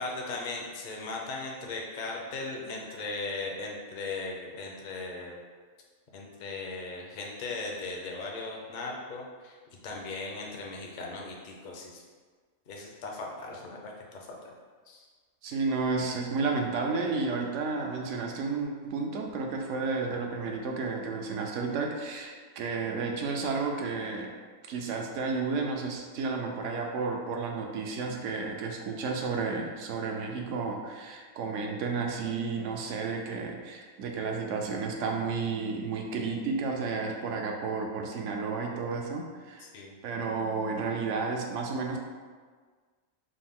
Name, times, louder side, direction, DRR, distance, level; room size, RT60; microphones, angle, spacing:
voice 1, 0.0-5.4 6.1-9.6 9.8-12.0 12.7-14.5 14.9-15.1 39.6-39.9, left 3 dB, 50° left, -1 dB, 0.6 m, -38 dB
voice 2, 15.4-24.3 24.7-39.7 40.0-42.0, right 4 dB, 70° right, 2 dB, 0.9 m, -32 dB
5.1 x 2.1 x 3.6 m, 1.5 s
omnidirectional pair, 1.4 m